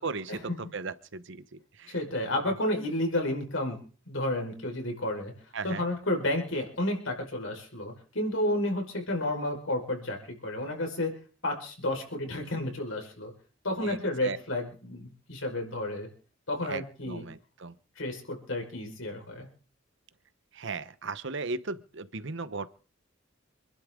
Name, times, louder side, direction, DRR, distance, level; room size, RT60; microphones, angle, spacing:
voice 1, 0.0-1.9 2.4-2.5 5.5-5.8 13.8-14.4 16.6-17.7 20.5-22.7, right 4 dB, 65° right, 14 dB, 1.0 m, -37 dB
voice 2, 1.9-5.3 5.6-11.1 11.4-13.3 13.6-16.1 16.5-17.2 18.0-19.5, left 1 dB, 75° left, 2 dB, 5.1 m, -31 dB
27.0 x 11.5 x 3.8 m, 0.40 s
head